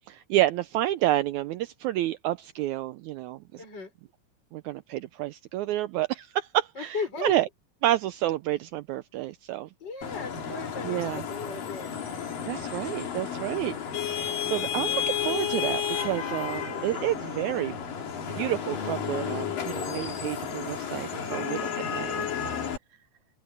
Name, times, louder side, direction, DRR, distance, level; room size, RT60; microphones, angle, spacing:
voice 1, 0.1-3.6 4.5-7.0 7.2-7.5 7.8-9.7 10.8-11.2 12.5-14.0 14.4-17.7 18.3-21.6 21.9-22.3, right 14 dB, 80° right, 1.7 m, -29 dB
voice 2, 3.6-3.9 6.7-7.3 9.8-11.9 21.1-21.5, left 4 dB, 30° left, 6.7 m, -36 dB
Vehicle horn car horn honking / Traffic noise roadway noise, 10.0-22.8, left 8 dB, 90° left, 4.7 m, -32 dB
omnidirectional pair, 3.8 m